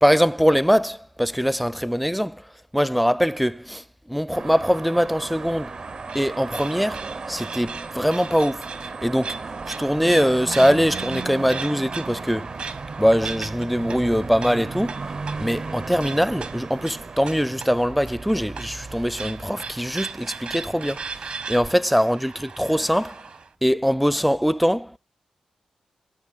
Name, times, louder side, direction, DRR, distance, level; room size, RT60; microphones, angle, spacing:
voice 1, 0.0-2.4 2.7-5.8 6.1-8.7 9.0-12.5 13.0-15.1 15.4-23.2 23.6-25.0, equal, ahead, 0.4 m, -22 dB
sound 1, 4.3-21.7, right 4 dB, 45° right, 0.6 m, -36 dB
sound 2, 5.4-23.5, right 5 dB, 70° right, 1.4 m, -38 dB
18.0 x 8.0 x 2.4 m
cardioid pair, 70°, 2 cm